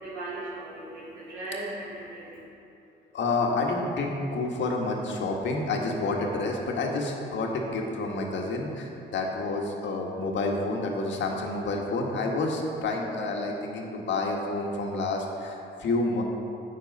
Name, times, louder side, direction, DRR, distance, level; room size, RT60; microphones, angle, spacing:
voice 1, 0.0-2.5, right 2 dB, 70° right, -9 dB, 2.3 m, -37 dB
voice 2, 3.1-16.2, left 2 dB, 70° left, 0 dB, 1.6 m, -29 dB
9.0 x 7.9 x 5.4 m, 2.7 s
cardioid pair, 90°, 20 cm